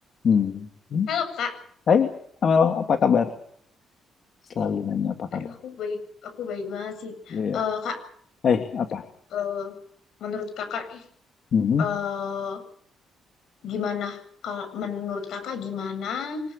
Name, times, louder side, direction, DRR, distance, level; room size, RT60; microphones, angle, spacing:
voice 1, 0.2-1.1 1.9-2.1 2.4-3.3 4.6-5.5 7.3-7.6 8.4-9.0 11.5-11.8, left 6 dB, 55° left, 6 dB, 2.5 m, -22 dB
voice 2, 1.1-1.5 5.3-8.0 9.3-9.7 10.2-11.0 11.8-12.6 13.6-16.4, left 7 dB, 75° left, 9 dB, 7.9 m, -31 dB
25.0 x 22.0 x 6.8 m, 0.64 s
cardioid pair, 90°, 0 cm